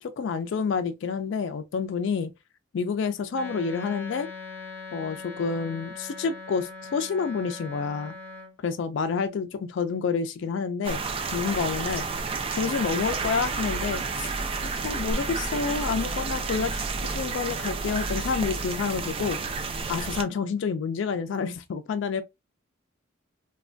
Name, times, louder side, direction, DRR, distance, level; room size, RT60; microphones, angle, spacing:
voice 1, 0.0-2.3 2.7-4.3 4.9-8.1 8.6-11.0 11.3-12.1 12.5-14.3 14.7-19.4 19.9-22.2, left 5 dB, 65° left, 0.3 m, -28 dB
Wind instrument woodwind instrument, 3.3-8.5, left 3 dB, 10° left, 1.2 m, -41 dB
sound 1, 10.8-20.2, right 4 dB, 30° right, 0.3 m, -30 dB
3.2 x 2.2 x 2.5 m
head